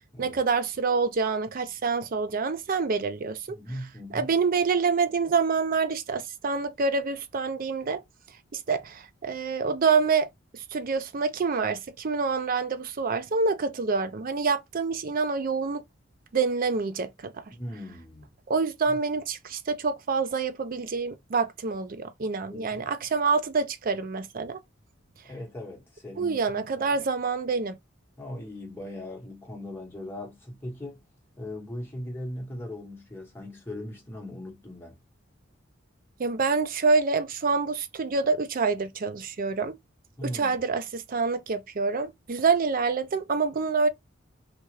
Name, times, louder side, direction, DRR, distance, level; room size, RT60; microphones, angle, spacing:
voice 1, 0.2-3.6 4.1-8.0 8.5-10.3 10.5-15.8 16.3-17.5 18.5-24.6 26.2-27.8 36.2-39.8 40.2-43.9, right 4 dB, 45° right, 0.4 m, -27 dB
voice 2, 3.5-4.3 17.5-18.3 18.9-19.0 22.5-22.9 25.2-27.0 28.2-31.0 31.4-35.0 40.2-40.6, left 1 dB, 10° left, 1.1 m, -39 dB
2.9 x 2.4 x 3.0 m
head